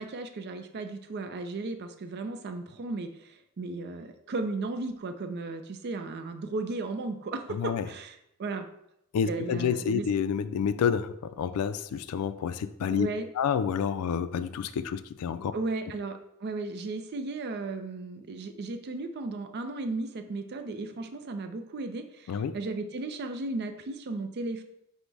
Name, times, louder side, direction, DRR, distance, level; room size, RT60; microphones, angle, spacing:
voice 1, 0.0-8.1 8.4-8.7 9.3-10.1 12.9-13.3 15.5-24.6, right 3 dB, 50° right, 8 dB, 0.4 m, -35 dB
voice 2, 7.5-7.9 9.1-13.1 13.3-15.5 22.3-22.6, left 7 dB, 80° left, 12 dB, 0.3 m, -29 dB
5.2 x 2.1 x 4.5 m, 0.80 s
head